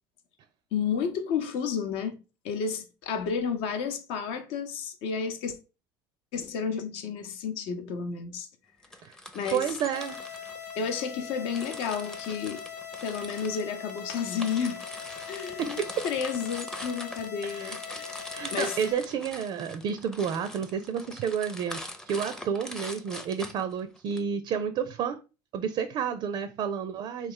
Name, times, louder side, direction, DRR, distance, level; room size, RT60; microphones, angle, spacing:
voice 1, 0.7-2.2 2.4-5.5 6.3-8.5 9.3-9.7 10.8-12.6 13.0-14.8 15.3-18.2 18.5-18.8, left 6 dB, 70° left, 0.7 m, -31 dB
sound 1, 8.8-11.1 11.5-24.2, left 1 dB, 5° left, 0.5 m, -42 dB
voice 2, 9.5-10.4 15.6-16.0 17.4-17.7 18.3-25.2 25.5-27.3, right 7 dB, 50° right, 0.4 m, -31 dB
sound 2, 9.9-18.9, left 7 dB, 90° left, 1.1 m, -41 dB
3.2 x 2.4 x 3.7 m
supercardioid pair, 95°, 10 cm